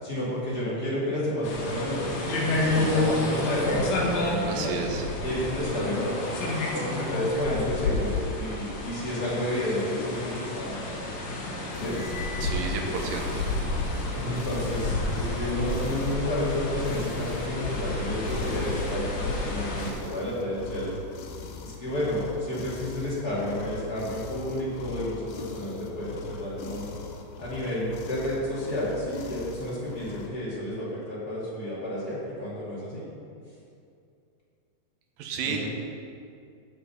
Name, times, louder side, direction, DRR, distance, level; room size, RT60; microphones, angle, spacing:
voice 1, 0.0-4.8 5.2-6.2 6.7-10.8 11.7-12.0 14.1-21.0 21.6-26.9 27.4-33.1 35.4-35.7, left 1 dB, 30° left, -9 dB, 2.9 m, -31 dB
sound 1, 1.4-19.9, left 2 dB, 60° left, 2.4 m, -30 dB
voice 2, 4.5-5.0 12.4-13.4 35.2-35.7, right 5 dB, 80° right, 3 dB, 2.7 m, -31 dB
sound 2, 11.7-30.3, left 4 dB, 85° left, 2.8 m, -41 dB
Cymbal, 11.9-13.3, left 5 dB, 25° right, 1.0 m, -43 dB
13.5 x 5.5 x 5.7 m, 2.5 s
omnidirectional pair, 4.0 m